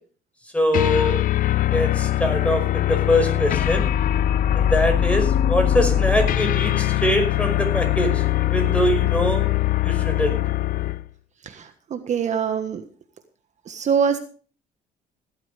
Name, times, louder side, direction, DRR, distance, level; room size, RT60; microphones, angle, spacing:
voice 1, 0.5-1.2 1.7-3.9 4.6-9.4 9.8-10.4, left 1 dB, 5° left, 5 dB, 5.4 m, -23 dB
sound 1, 0.7-11.1, left 12 dB, 55° left, 0.6 m, -21 dB
voice 2, 11.9-12.8 13.7-14.2, right 7 dB, 45° right, 7 dB, 1.5 m, -23 dB
17.5 x 12.0 x 3.4 m, 0.41 s
cardioid pair, 110°, 17 cm